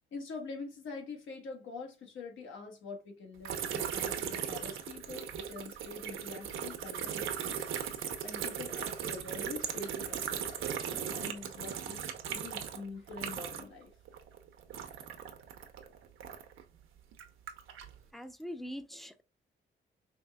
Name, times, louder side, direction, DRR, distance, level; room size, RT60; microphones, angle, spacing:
voice 1, 0.1-7.7 8.2-13.9, left 4 dB, 75° left, 1.3 m, -45 dB
sound 1, 3.4-13.8 14.1-16.6 17.1-17.9, right 8 dB, 85° right, 0.8 m, -38 dB
voice 2, 18.1-19.2, equal, ahead, 0.4 m, -42 dB
5.3 x 3.3 x 2.3 m
cardioid pair, 130°, 20 cm